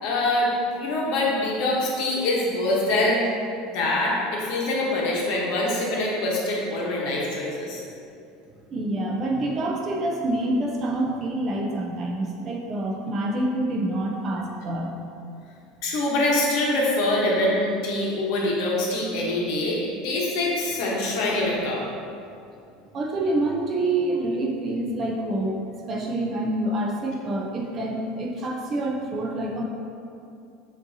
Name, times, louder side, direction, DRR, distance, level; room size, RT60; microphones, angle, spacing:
voice 1, 0.0-3.3 3.6-7.8 15.8-21.8, left 1 dB, 55° left, -3 dB, 0.9 m, -24 dB
voice 2, 8.7-14.9 22.9-25.6 25.9-29.6, right 1 dB, 25° right, -1 dB, 0.4 m, -27 dB
7.1 x 2.6 x 2.7 m, 2.5 s
cardioid pair, 170°, 0 cm